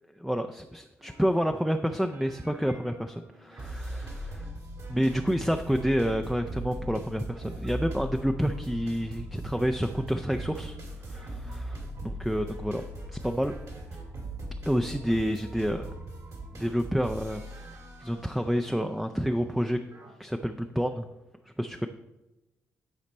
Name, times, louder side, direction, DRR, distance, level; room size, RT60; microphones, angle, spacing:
voice 1, 0.2-4.5 4.9-10.8 11.1-12.8 13.1-13.5 14.7-15.9 16.5-19.8 20.2-21.1 21.6-21.9, equal, 5° right, 6 dB, 0.5 m, -29 dB
sound 1, 1.0-20.2, right 1 dB, 55° right, 2.1 m, -40 dB
10.5 x 4.2 x 4.1 m, 1.0 s
hypercardioid pair, 45°, 7 cm